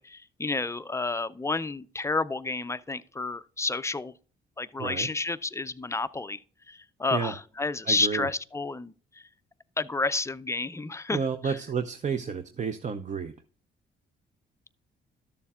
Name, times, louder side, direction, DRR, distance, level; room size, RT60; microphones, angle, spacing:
voice 1, 0.0-4.1 4.6-6.4 6.7-9.2 9.8-11.6, left 3 dB, 15° left, 0.4 m, -30 dB
voice 2, 4.8-5.1 7.1-7.3 7.9-8.3 11.1-13.3, right 6 dB, 35° right, 0.7 m, -31 dB
13.0 x 6.9 x 2.4 m
cardioid pair, 90°, 20 cm